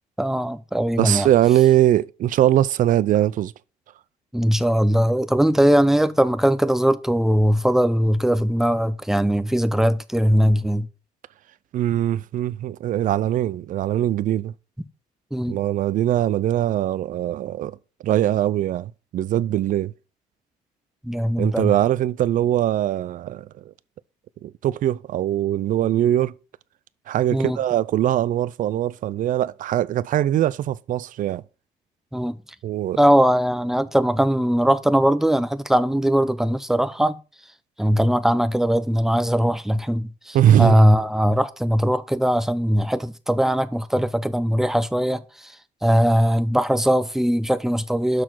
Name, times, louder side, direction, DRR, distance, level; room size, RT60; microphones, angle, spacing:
voice 1, 0.2-1.3 4.3-10.9 15.3-15.6 21.0-21.7 27.3-27.6 32.1-32.4 33.0-37.2 37.8-45.5 45.8-48.2, equal, ahead, 0.6 m, -20 dB
voice 2, 1.0-3.5 11.7-14.5 15.5-17.8 18.0-19.9 21.4-23.5 24.4-26.3 27.1-31.4 32.6-33.0 40.3-40.8, right 12 dB, 50° right, 0.4 m, -21 dB
6.5 x 6.1 x 4.4 m
cardioid pair, 110°, 17 cm